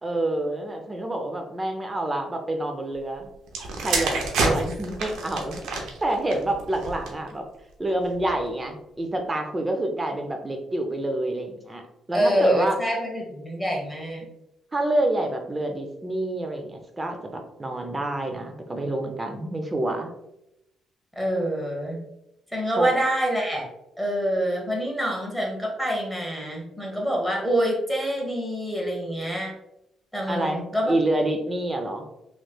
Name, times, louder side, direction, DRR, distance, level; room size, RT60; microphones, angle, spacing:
voice 1, 0.0-3.3 3.8-7.4 7.8-11.8 12.1-12.8 14.7-20.1 22.7-22.9 30.3-32.1, right 1 dB, 20° right, 4 dB, 0.6 m, -27 dB
sound 1, 3.5-7.3 8.1-8.4, right 3 dB, 85° right, 0.6 m, -28 dB
voice 2, 12.1-14.3 21.2-22.0 22.5-23.7 24.0-29.5 30.1-30.9, right 1 dB, ahead, -2 dB, 1.2 m, -26 dB
3.2 x 3.1 x 2.3 m, 0.85 s
cardioid pair, 90°, 0 cm